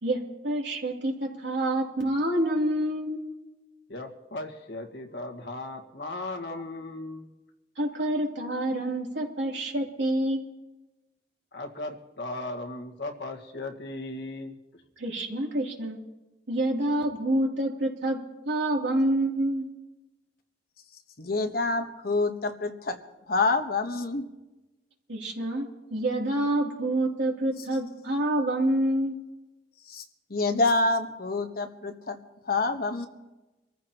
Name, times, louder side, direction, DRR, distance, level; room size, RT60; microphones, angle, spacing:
voice 1, 0.0-3.2 7.8-10.5 15.0-16.0 16.5-18.2 18.4-19.6 25.1-29.1, right 1 dB, 90° right, -1 dB, 3.0 m, -27 dB
voice 2, 3.9-7.3 11.5-14.6, left 2 dB, 75° left, 3 dB, 1.7 m, -37 dB
voice 3, 21.2-23.0 23.3-24.2 29.9-30.0 30.3-32.2 32.5-33.1, left 3 dB, 60° left, 6 dB, 1.2 m, -27 dB
26.0 x 14.5 x 3.0 m, 1.1 s
head